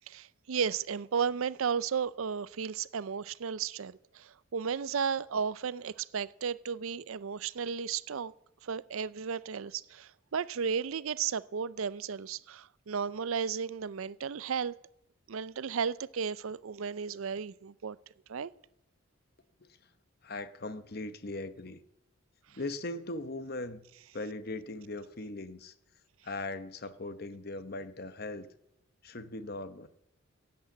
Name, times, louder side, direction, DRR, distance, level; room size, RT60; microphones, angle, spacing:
voice 1, 0.1-8.3 8.6-14.7 15.3-18.0 18.3-18.5, right 6 dB, 80° right, 0.5 m, -34 dB
voice 2, 20.2-21.8 22.5-23.8 24.1-25.7 26.2-28.5 29.0-29.9, left 2 dB, 45° left, 0.9 m, -39 dB
16.5 x 8.7 x 7.8 m
head